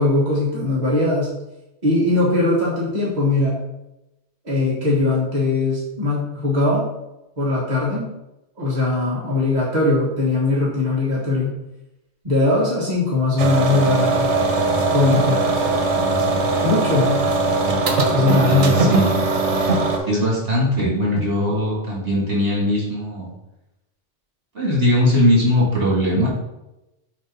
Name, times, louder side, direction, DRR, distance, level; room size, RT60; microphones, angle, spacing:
voice 1, 0.0-1.3 1.8-3.6 4.4-6.9 7.4-8.1 8.6-11.6 12.2-14.3 14.9-15.5 16.6-17.2 18.1-19.0, left 2 dB, 40° right, -7 dB, 1.9 m, -20 dB
sound 1, 13.4-20.0, right 3 dB, 85° right, 1.3 m, -20 dB
voice 2, 18.4-19.2 20.1-23.3 24.5-26.3, equal, 60° right, -6 dB, 2.6 m, -20 dB
7.2 x 2.9 x 5.6 m, 0.93 s
omnidirectional pair, 1.2 m